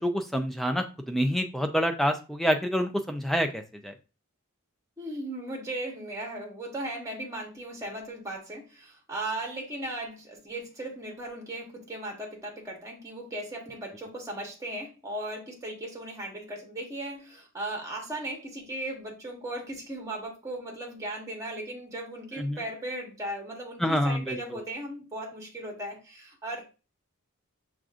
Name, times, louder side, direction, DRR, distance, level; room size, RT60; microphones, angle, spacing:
voice 1, 0.0-3.9 22.4-22.6 23.8-24.6, equal, ahead, 5 dB, 0.3 m, -27 dB
voice 2, 5.0-26.6, right 1 dB, 15° right, 0 dB, 1.1 m, -37 dB
6.1 x 2.4 x 2.4 m, 0.31 s
head